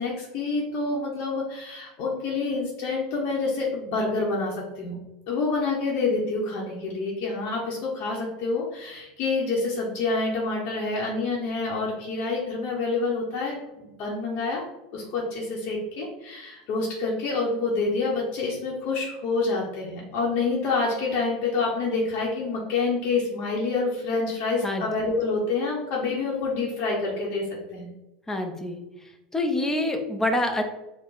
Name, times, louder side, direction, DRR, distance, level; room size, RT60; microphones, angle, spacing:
voice 1, 0.0-4.9 5.3-14.6 14.9-27.5 27.7-27.9, left 3 dB, 55° left, -3 dB, 0.8 m, -27 dB
voice 2, 28.3-28.8 29.3-30.6, left 1 dB, 10° left, 4 dB, 0.6 m, -26 dB
4.7 x 2.1 x 3.9 m, 0.99 s
supercardioid pair, 115°, 4 cm